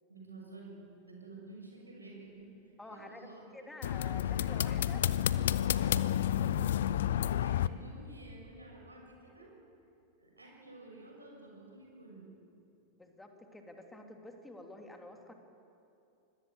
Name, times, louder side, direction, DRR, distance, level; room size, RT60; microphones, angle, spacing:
voice 1, 0.1-3.4 3.9-5.1 7.4-9.5 10.2-12.3, right 2 dB, 80° right, -1 dB, 6.7 m, -52 dB
voice 2, 2.8-3.3 3.5-5.0 13.0-15.3, left 1 dB, 5° left, 3 dB, 3.1 m, -49 dB
sound 1, 3.8-7.7, left 11 dB, 60° left, 0.7 m, -30 dB
25.0 x 21.0 x 8.1 m, 2.7 s
figure-of-eight pair, 90°, 0 cm